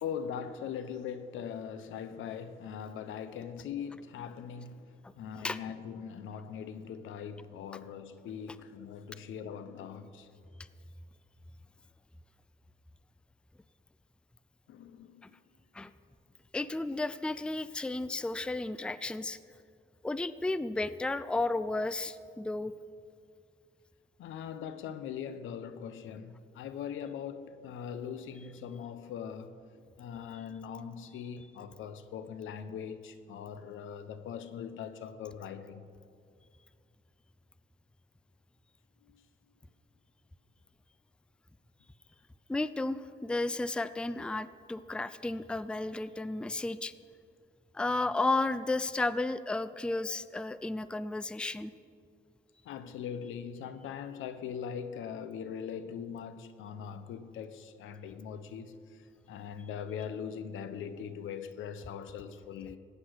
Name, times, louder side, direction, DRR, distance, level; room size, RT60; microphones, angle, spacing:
voice 1, 0.0-10.3 14.7-15.4 24.2-29.6 30.0-35.9 39.0-39.2 52.6-62.8, left 7 dB, 80° left, 0.9 m, -41 dB
voice 2, 16.5-19.4 20.0-22.7 42.5-46.9 47.7-51.7, left 2 dB, 5° left, 0.4 m, -33 dB
15.0 x 9.8 x 6.5 m
cardioid pair, 90°, 20 cm